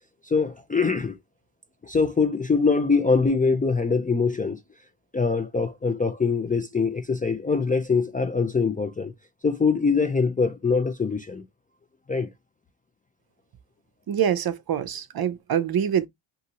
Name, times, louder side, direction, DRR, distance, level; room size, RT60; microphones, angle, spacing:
voice 1, 0.2-1.2 1.8-4.6 5.1-9.1 9.4-11.4 12.1-12.3, left 4 dB, 20° left, 0.3 m, -23 dB
voice 2, 14.1-16.1, right 9 dB, 50° right, 0.6 m, -25 dB
2.7 x 2.6 x 2.8 m
cardioid pair, 75°, 49 cm